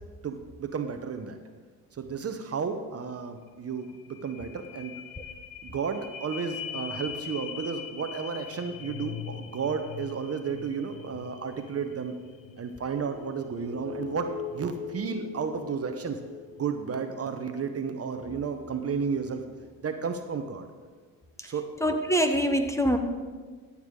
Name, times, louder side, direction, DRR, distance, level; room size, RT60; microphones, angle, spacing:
voice 1, 0.2-1.4 1.9-5.0 5.6-12.2 12.6-16.2 16.6-19.4 19.8-20.7 21.5-21.7, right 6 dB, 35° right, 7 dB, 0.9 m, -32 dB
sound 1, 3.5-3.6 3.8-19.8 20.3-20.4, left 7 dB, 55° left, 1.1 m, -42 dB
voice 2, 21.8-23.0, equal, 5° left, 5 dB, 1.0 m, -24 dB
13.5 x 7.2 x 3.8 m, 1.4 s
hypercardioid pair, 65°, 41 cm